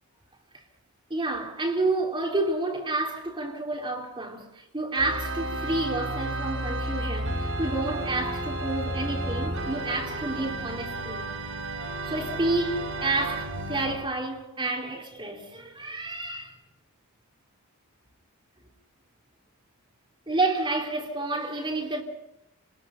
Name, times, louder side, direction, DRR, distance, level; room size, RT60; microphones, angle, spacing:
voice 1, 1.1-11.3 12.1-16.6 20.3-22.0, right 2 dB, 25° right, 3.5 m, -29 dB
Organ, 4.9-14.1, right 1 dB, 65° right, 6.7 m, -32 dB
30.0 x 20.5 x 5.9 m
head